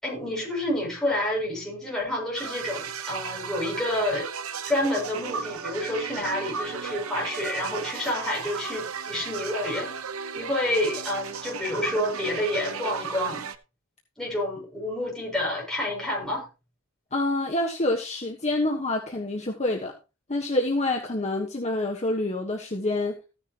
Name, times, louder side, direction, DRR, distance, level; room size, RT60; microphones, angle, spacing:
voice 1, 0.0-4.3 4.7-9.9 10.4-13.4 14.2-16.5, left 1 dB, ahead, -4 dB, 6.9 m, -29 dB
sound 1, 2.4-13.6, right 6 dB, 80° right, 1.1 m, -35 dB
voice 2, 17.1-19.9 20.3-23.2, left 2 dB, 30° left, 0 dB, 1.4 m, -27 dB
15.0 x 9.9 x 3.0 m, 0.30 s
head